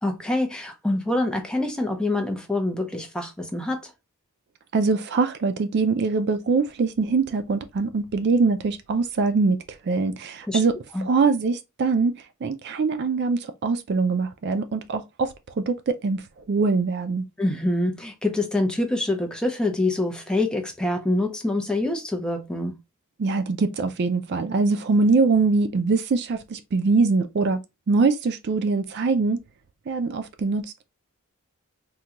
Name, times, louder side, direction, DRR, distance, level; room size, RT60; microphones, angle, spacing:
voice 1, 0.0-3.9 10.5-10.6 10.9-11.1 17.4-22.8, left 2 dB, 5° left, 0.5 m, -25 dB
voice 2, 4.7-10.7 11.0-17.2 23.2-27.6 27.9-29.4 29.9-30.7, right 4 dB, 50° right, 0.4 m, -23 dB
3.6 x 2.2 x 2.8 m
head